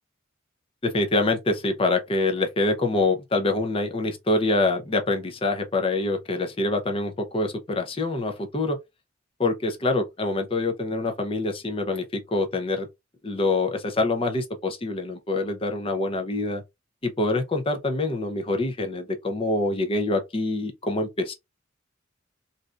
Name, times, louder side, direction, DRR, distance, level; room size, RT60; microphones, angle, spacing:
voice 1, 0.8-8.8 9.4-12.9 13.2-16.6 17.0-21.3, left 2 dB, 25° left, 0.6 m, -25 dB
3.3 x 2.6 x 2.4 m
head